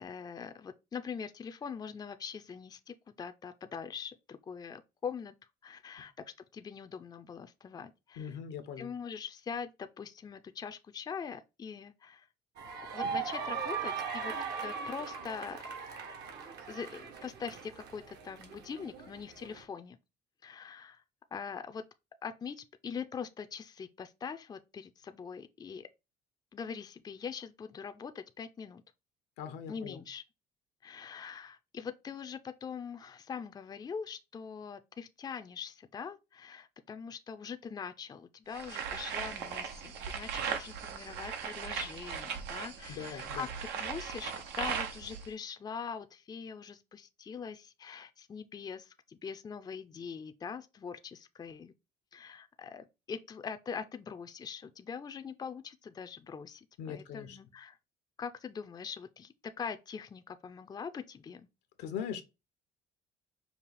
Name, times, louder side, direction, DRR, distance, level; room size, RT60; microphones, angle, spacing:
voice 1, 0.0-5.3 5.6-8.4 8.8-12.3 12.9-14.3 14.6-15.6 16.7-20.0 20.4-21.0 21.3-21.8 22.2-25.9 26.5-28.8 29.7-30.2 30.8-51.7 52.1-57.8 58.2-61.5, left 6 dB, 25° left, 0.4 m, -43 dB
voice 2, 8.2-8.9 29.4-30.0 42.9-43.5 56.8-57.4 61.8-62.2, left 8 dB, 90° left, 0.9 m, -40 dB
sound 1, 12.6-19.6, right 6 dB, 70° right, 1.2 m, -39 dB
sound 2, 38.5-45.3, right 7 dB, 90° right, 0.9 m, -38 dB
5.4 x 2.4 x 4.1 m
cardioid pair, 110°, 17 cm